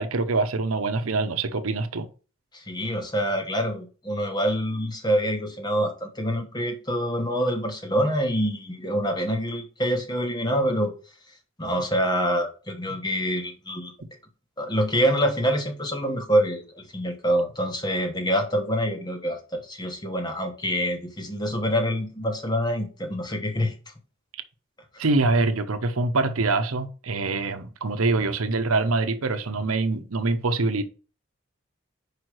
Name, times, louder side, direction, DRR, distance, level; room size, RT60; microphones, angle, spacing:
voice 1, 0.0-2.1 25.0-30.8, right 3 dB, 90° right, 0.8 m, -24 dB
voice 2, 2.5-10.9 11.6-13.9 14.6-23.7 24.9-25.0, equal, 20° left, 1.2 m, -26 dB
5.0 x 4.8 x 6.2 m
head